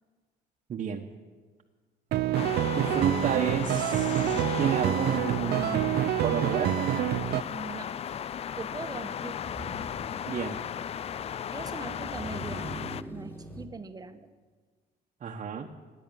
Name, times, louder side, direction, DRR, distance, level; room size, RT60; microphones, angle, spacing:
voice 1, 0.7-1.1 2.7-6.9 10.3-10.6 15.2-15.7, right 7 dB, 45° right, 1 dB, 1.2 m, -31 dB
sound 1, 2.1-7.4, right 13 dB, 70° right, 0.6 m, -27 dB
sound 2, 2.3-13.0, left 9 dB, 35° left, 0.4 m, -35 dB
voice 2, 7.5-7.9 8.6-9.6 11.5-14.3, right 4 dB, 25° right, 9 dB, 1.1 m, -41 dB
Motor vehicle (road), 8.1-8.2 9.3-13.7, right 1 dB, 15° left, 2.8 m, -43 dB
16.5 x 9.8 x 9.0 m, 1.5 s
cardioid pair, 110°, 17 cm